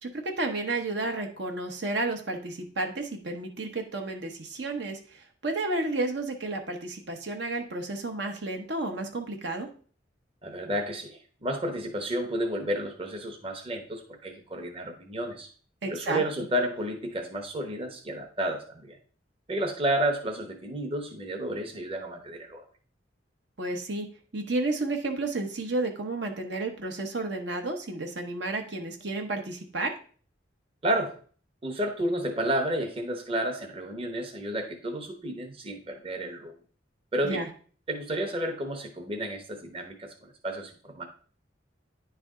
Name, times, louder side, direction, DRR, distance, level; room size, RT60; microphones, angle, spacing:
voice 1, 0.0-9.7 15.8-16.2 23.6-24.1 24.3-29.9 37.2-37.5, right 2 dB, 60° right, 3 dB, 0.9 m, -32 dB
voice 2, 10.4-15.5 15.9-19.0 19.5-22.6 30.8-31.2 31.6-36.5 37.1-37.4 37.9-41.0, right 1 dB, 30° right, 3 dB, 0.9 m, -31 dB
10.0 x 3.4 x 3.6 m, 0.42 s
head